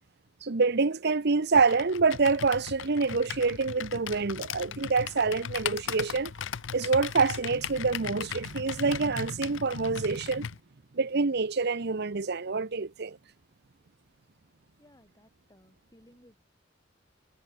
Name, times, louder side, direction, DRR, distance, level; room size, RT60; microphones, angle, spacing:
voice 1, 0.4-6.3 6.7-10.5 10.9-13.2, right 4 dB, 60° right, 0.9 m, -26 dB
Computer keyboard, 1.5-10.6, left 8 dB, 70° left, 0.5 m, -38 dB
voice 2, 14.8-16.4, left 1 dB, 20° left, 7.2 m, -59 dB
head